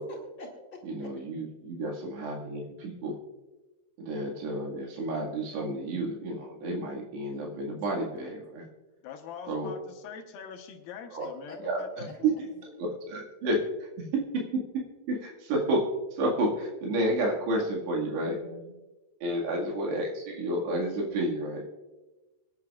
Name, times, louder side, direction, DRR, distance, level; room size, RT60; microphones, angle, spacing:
voice 1, 0.0-1.1 7.3-7.8 11.2-11.6 18.4-18.8, left 1 dB, 40° left, 2.2 m, -47 dB
voice 2, 0.8-3.2 4.0-8.7 9.5-9.7 11.1-11.3 11.6-12.3 12.8-14.6 15.1-18.4 19.2-21.7, right 1 dB, 90° right, 4.1 m, -30 dB
voice 3, 9.0-12.4, left 7 dB, 75° left, 2.5 m, -43 dB
25.5 x 10.5 x 2.4 m
omnidirectional pair, 4.7 m